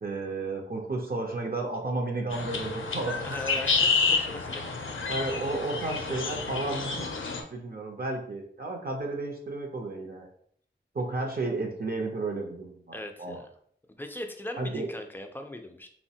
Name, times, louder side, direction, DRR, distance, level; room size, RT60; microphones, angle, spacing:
voice 1, 0.0-3.2 5.1-7.2 7.5-10.3 10.9-13.4 14.6-14.9, right 2 dB, 50° right, 1 dB, 0.5 m, -32 dB
sound 1, 2.3-7.4, left 4 dB, 85° left, 0.4 m, -29 dB
voice 2, 3.2-4.6 12.9-13.5 14.0-15.9, left 1 dB, 10° left, 5 dB, 0.4 m, -39 dB
3.2 x 2.1 x 2.7 m, 0.63 s
wide cardioid pair, 65°, 20 cm